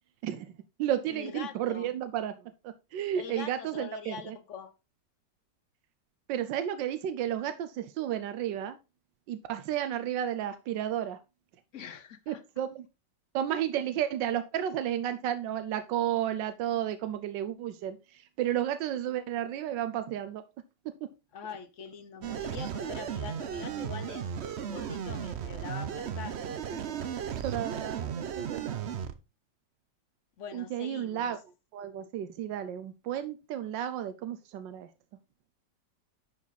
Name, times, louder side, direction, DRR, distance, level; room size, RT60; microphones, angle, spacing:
voice 1, 0.2-4.4 6.3-8.8 9.3-11.2 12.3-12.9 13.3-20.5 20.8-21.1 27.4-28.9 30.5-31.4 31.7-34.9, right 10 dB, 90° right, 1.4 m, -32 dB
voice 2, 1.1-1.9 3.2-4.7 11.7-12.4 21.3-26.8 30.4-31.3, left 7 dB, 55° left, 0.9 m, -43 dB
sound 1, 22.2-29.1, right 8 dB, 60° right, 0.7 m, -35 dB
10.5 x 4.9 x 4.0 m
omnidirectional pair, 1.9 m